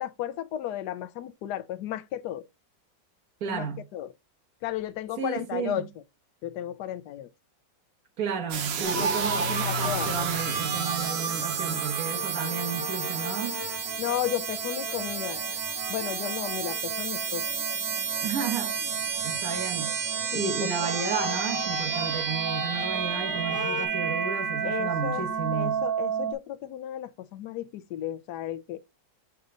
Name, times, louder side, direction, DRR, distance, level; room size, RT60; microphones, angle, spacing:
voice 1, 0.0-2.4 3.5-3.7 3.9-4.1 4.6-5.9 6.4-7.3 9.0-9.1 9.4-10.2 14.0-15.4 15.9-17.4 20.3-20.5 24.6-25.2 25.5-28.8, left 12 dB, 70° left, 1.2 m, -34 dB
voice 2, 3.4-3.9 5.1-5.9 8.2-13.6 18.2-18.8 19.2-20.0 20.3-25.8, right 6 dB, 55° right, 1.6 m, -33 dB
sound 1, 8.5-26.3, right 7 dB, 80° right, 1.7 m, -31 dB
sound 2, 8.8-13.4, right 3 dB, 35° right, 1.2 m, -32 dB
sound 3, 10.3-23.9, left 2 dB, 5° right, 1.8 m, -41 dB
6.6 x 4.2 x 3.7 m
omnidirectional pair, 1.9 m